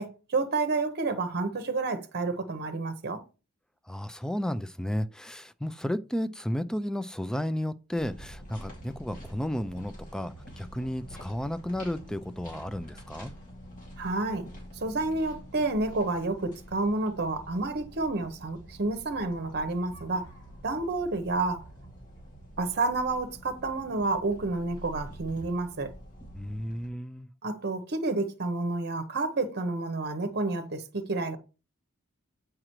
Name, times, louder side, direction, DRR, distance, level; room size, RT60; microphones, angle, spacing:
voice 1, 0.0-3.2 14.0-14.5 14.7-20.3 20.6-21.6 22.6-25.9 27.4-31.4, right 3 dB, 50° right, 0.8 m, -30 dB
voice 2, 3.9-13.3 26.3-27.3, left 1 dB, 5° left, 0.3 m, -33 dB
sound 1, 8.0-26.9, equal, 40° left, 2.2 m, -47 dB
7.7 x 4.9 x 3.0 m
head